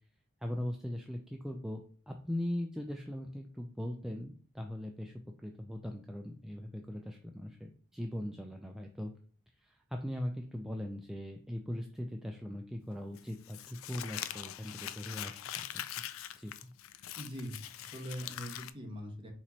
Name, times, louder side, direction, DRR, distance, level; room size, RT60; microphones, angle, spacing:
voice 1, 0.4-1.8 2.1-5.1 5.4-9.1 9.6-15.8 16.3-16.7, left 1 dB, ahead, 2 dB, 0.3 m, -40 dB
Crumpling crinkling, 13.2-18.7, left 11 dB, 75° left, 0.4 m, -43 dB
voice 2, 17.2-17.6 17.8-19.3, equal, 25° right, 1 dB, 1.1 m, -42 dB
4.3 x 3.0 x 4.0 m, 0.42 s
head